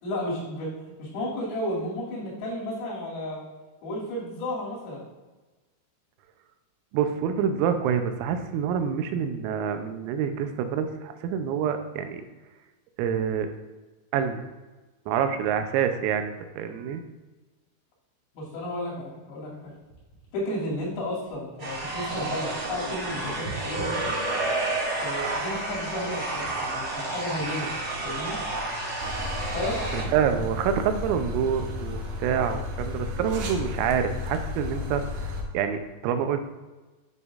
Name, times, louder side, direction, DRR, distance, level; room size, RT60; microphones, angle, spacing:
voice 1, 0.0-3.5 3.8-5.0 18.4-19.6 20.3-24.0 25.0-27.7 28.0-28.4 29.5-29.8, left 1 dB, 80° left, -5 dB, 5.3 m, -33 dB
voice 2, 6.9-12.3 13.0-13.5 14.1-14.4 15.1-17.0 29.9-36.4, right 8 dB, 90° right, 7 dB, 3.4 m, -27 dB
sound 1, 19.6-22.3 22.6-24.7 25.3-28.8 29.1-31.9 32.5-32.7, right 2 dB, 50° left, 2.8 m, -46 dB
sound 2, 21.6-30.0, right 2 dB, 50° right, 1.5 m, -30 dB
sound 3, 29.0-35.4, left 3 dB, 75° right, 2.7 m, -33 dB
10.5 x 6.9 x 2.5 m, 1.2 s
omnidirectional pair, 5.9 m